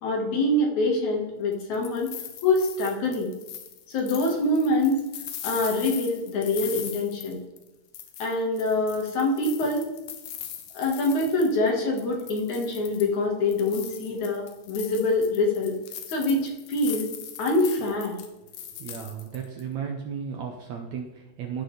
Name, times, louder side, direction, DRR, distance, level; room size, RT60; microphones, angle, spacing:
voice 1, 0.0-2.1 2.4-3.3 3.9-5.0 5.4-7.4 8.2-9.9 10.7-15.7 16.1-17.1 17.4-18.2, left 2 dB, 60° left, 0 dB, 2.7 m, -25 dB
sound 1, 1.5-7.7 7.9-11.7 12.0-13.2 13.5-19.6, left 10 dB, 80° left, 2.6 m, -40 dB
voice 2, 18.8-21.6, right 7 dB, 70° right, 2 dB, 1.8 m, -34 dB
14.5 x 6.2 x 3.3 m, 1.0 s
omnidirectional pair, 4.0 m